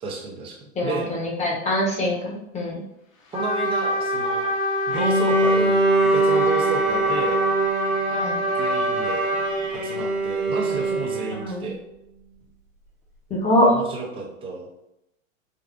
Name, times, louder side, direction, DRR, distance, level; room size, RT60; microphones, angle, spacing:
voice 1, 0.0-0.6 0.8-1.1 3.3-4.5 4.9-7.4 8.6-9.3 9.8-11.8 13.6-14.7, right 3 dB, 15° right, 0 dB, 0.4 m, -32 dB
voice 2, 0.8-2.8 8.1-8.4 11.4-11.7 13.3-13.7, left 1 dB, 15° left, -2 dB, 0.8 m, -23 dB
Trumpet, 3.3-9.5, left 1 dB, 75° left, 1.0 m, -25 dB
Bowed string instrument, 4.9-11.6, right 3 dB, 30° right, 0.9 m, -24 dB
3.6 x 2.3 x 2.4 m, 0.83 s
hypercardioid pair, 110°, 40 cm